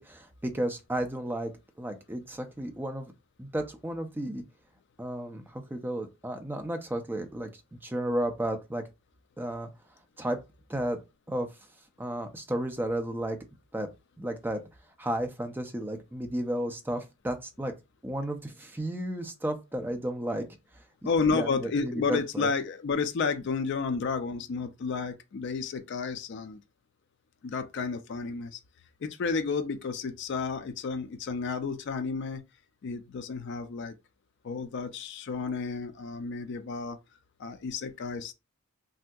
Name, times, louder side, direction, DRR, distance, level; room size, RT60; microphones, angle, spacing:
voice 1, 0.0-1.5 1.8-3.1 3.4-4.4 5.0-7.5 7.8-8.8 9.4-9.7 10.2-10.4 10.7-11.0 11.3-11.5 12.0-13.4 13.7-13.9 14.2-14.6 15.0-17.7 18.0-20.4 21.3-22.5, right 1 dB, 10° right, 0.4 m, -33 dB
voice 2, 21.0-26.6 27.4-28.6 29.0-32.4 32.8-33.9 34.4-37.0 37.4-38.3, left 5 dB, 55° left, 0.4 m, -31 dB
3.3 x 2.7 x 2.3 m
head